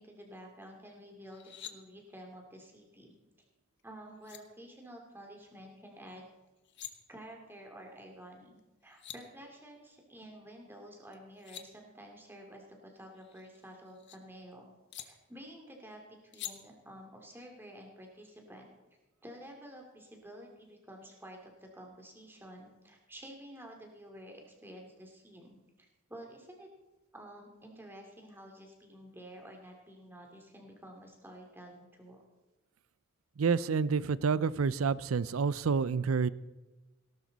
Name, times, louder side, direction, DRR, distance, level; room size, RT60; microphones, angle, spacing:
voice 1, 0.0-3.1 3.8-6.2 7.1-14.7 15.0-18.7 19.2-26.7 27.1-32.2, equal, 10° right, 1 dB, 2.7 m, -51 dB
sound 1, 1.3-1.7 3.8-3.9 4.2-4.4 6.5-6.9 8.6-8.7 8.8-9.2 11.1-11.7 13.1-14.2 14.9-15.1 16.3-16.5, left 11 dB, 60° left, 1.0 m, -45 dB
voice 2, 33.4-36.3, right 5 dB, 90° right, 19 dB, 0.5 m, -28 dB
17.5 x 12.0 x 4.1 m, 1.1 s
head